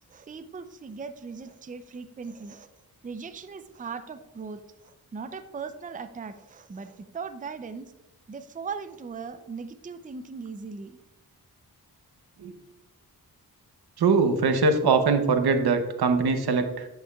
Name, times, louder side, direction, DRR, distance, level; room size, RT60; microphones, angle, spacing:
voice 1, 0.1-2.7 3.0-7.9 8.3-11.0, right 5 dB, 20° right, 10 dB, 0.4 m, -39 dB
voice 2, 14.0-16.9, right 4 dB, 85° right, 7 dB, 0.8 m, -22 dB
8.6 x 8.4 x 2.3 m, 0.97 s
wide cardioid pair, 95°, 37 cm